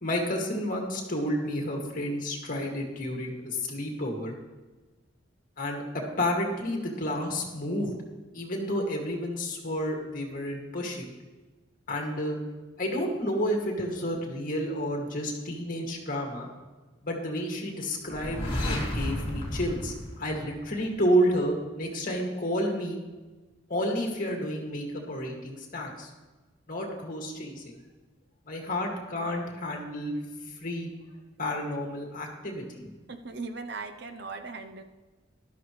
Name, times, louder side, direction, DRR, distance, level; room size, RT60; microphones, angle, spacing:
voice 1, 0.0-4.4 5.6-7.9 8.3-11.1 11.9-12.4 12.8-16.5 17.0-23.0 23.7-26.1 26.7-27.7 28.5-30.2 30.6-30.9 31.4-32.9, equal, 45° left, 1 dB, 2.1 m, -30 dB
sound 1, 18.1-21.0, left 1 dB, 30° left, 2.7 m, -32 dB
voice 2, 33.1-34.8, right 4 dB, 60° right, 8 dB, 0.7 m, -38 dB
13.0 x 12.0 x 3.2 m, 1.3 s
head